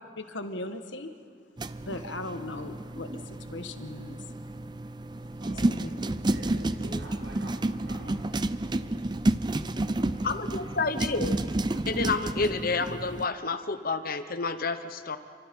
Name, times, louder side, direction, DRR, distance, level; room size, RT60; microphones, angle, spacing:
voice 1, 0.2-1.1 1.8-4.2 5.6-5.9, left 2 dB, 70° left, 7 dB, 1.5 m, -38 dB
sound 1, 1.6-13.3, right 2 dB, 25° right, 0.5 m, -31 dB
voice 2, 5.4-5.9 6.2-9.2 9.7-10.3 10.5-10.9, equal, 85° right, -5 dB, 5.9 m, -47 dB
voice 3, 10.2-11.4 11.9-15.2, left 4 dB, 50° left, 10 dB, 1.0 m, -29 dB
29.0 x 25.0 x 5.4 m, 2.2 s
head